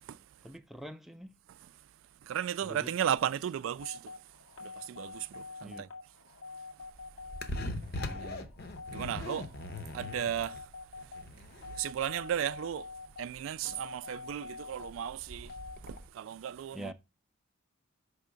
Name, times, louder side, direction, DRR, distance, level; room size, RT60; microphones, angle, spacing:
voice 1, 0.4-1.3 2.6-2.9 5.6-5.9 7.9-8.5 16.7-16.9, equal, ahead, 0.5 m, -45 dB
voice 2, 2.3-4.1 4.6-5.9 8.2-8.4 8.9-9.5 9.9-10.6 11.8-12.9 13.2-15.5 15.8-16.9, right 9 dB, 70° right, 0.3 m, -35 dB
sound 1, 3.8-15.8, left 4 dB, 80° left, 2.1 m, -46 dB
sound 2, 6.8-16.1, left 2 dB, 50° left, 0.8 m, -42 dB
5.5 x 3.5 x 5.0 m
head